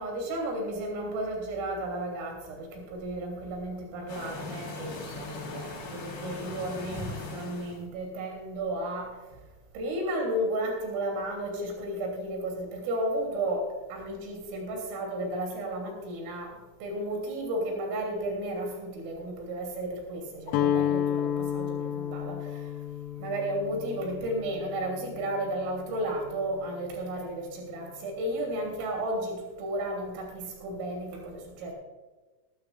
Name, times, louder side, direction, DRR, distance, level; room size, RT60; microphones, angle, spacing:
voice 1, 0.0-9.2 9.7-22.7 23.2-31.7, right 1 dB, 85° right, 0 dB, 5.7 m, -33 dB
sound 1, 4.1-7.8, left 3 dB, 55° left, 6.6 m, -39 dB
Guitar, 20.5-26.5, left 10 dB, 90° left, 2.5 m, -32 dB
21.0 x 12.5 x 2.5 m, 1.2 s
omnidirectional pair, 5.7 m